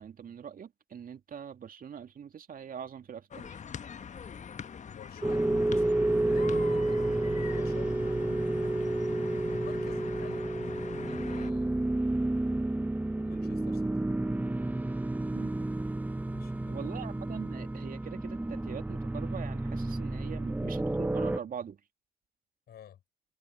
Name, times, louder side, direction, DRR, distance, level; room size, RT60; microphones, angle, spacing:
voice 1, 0.0-3.6 15.3-15.5 16.7-21.8, right 8 dB, 45° right, 2.5 m, -43 dB
sound 1, 3.3-11.5, left 7 dB, 35° left, 1.3 m, -43 dB
voice 2, 4.9-7.9 9.4-10.5 11.0-11.8 13.2-13.9 16.3-16.9 22.7-23.0, left 10 dB, 55° left, 5.3 m, -50 dB
sound 2, 5.2-21.4, right 2 dB, 10° right, 0.7 m, -30 dB
hypercardioid pair, 50°, 20 cm